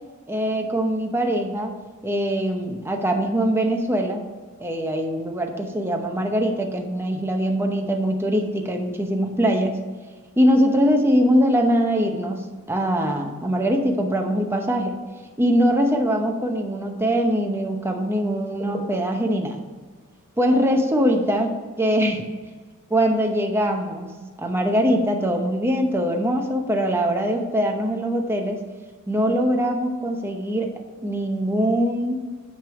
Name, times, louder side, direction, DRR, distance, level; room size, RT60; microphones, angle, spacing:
voice 1, 0.3-1.8 2.0-4.2 4.6-9.8 10.4-12.4 12.7-14.9 15.4-19.6 20.4-22.2 22.9-24.1 24.4-28.6 29.1-30.7 31.0-32.2, equal, 10° right, 3 dB, 0.7 m, -22 dB
9.2 x 3.4 x 5.8 m, 1.5 s
head